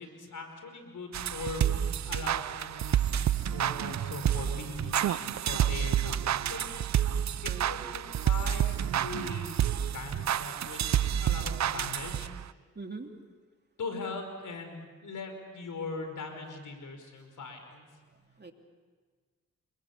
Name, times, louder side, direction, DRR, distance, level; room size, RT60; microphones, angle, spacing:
voice 1, 0.0-1.8 2.1-6.8 7.4-12.3 13.8-17.9, left 3 dB, 70° left, 6 dB, 4.9 m, -41 dB
sound 1, 1.1-12.5, right 10 dB, 60° right, 0.6 m, -29 dB
voice 2, 7.4-7.9 12.7-13.1 18.1-18.5, right 3 dB, 30° right, 4 dB, 3.1 m, -43 dB
28.0 x 22.0 x 7.2 m, 1.5 s
supercardioid pair, 45°, 32 cm